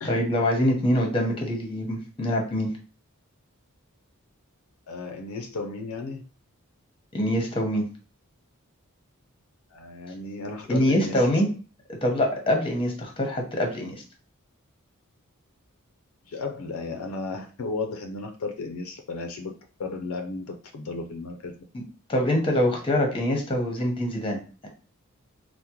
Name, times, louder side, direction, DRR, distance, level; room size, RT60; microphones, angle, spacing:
voice 1, 0.1-2.7 7.1-7.8 10.7-11.5 12.0-14.0 21.7-21.8 22.1-24.7, equal, 25° left, 2 dB, 0.8 m, -24 dB
voice 2, 4.9-6.2 9.7-11.4 16.3-19.5 19.8-21.5, left 3 dB, 75° left, 4 dB, 0.5 m, -34 dB
3.6 x 2.1 x 2.8 m, 0.37 s
head